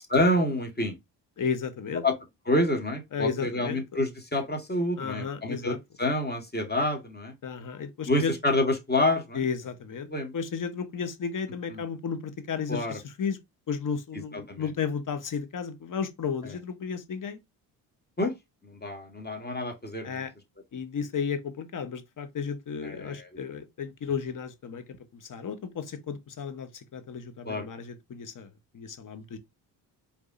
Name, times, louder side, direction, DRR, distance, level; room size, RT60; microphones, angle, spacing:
voice 1, 0.1-1.0 2.0-2.1 2.5-7.3 8.1-9.4 10.1-10.3 11.7-11.8 12.7-13.0 14.5-14.7 16.4-16.5 18.2-18.3 18.6-20.3 22.8-23.3 27.4-27.7, left 1 dB, 20° left, 1.9 m, -28 dB
voice 2, 1.4-2.0 3.1-3.8 5.0-5.8 7.4-8.3 9.3-13.4 13.7-17.4 20.0-20.3 20.7-28.5 28.7-29.4, left 6 dB, 40° left, 1.2 m, -33 dB
4.8 x 3.5 x 2.6 m
hypercardioid pair, 55°, 47 cm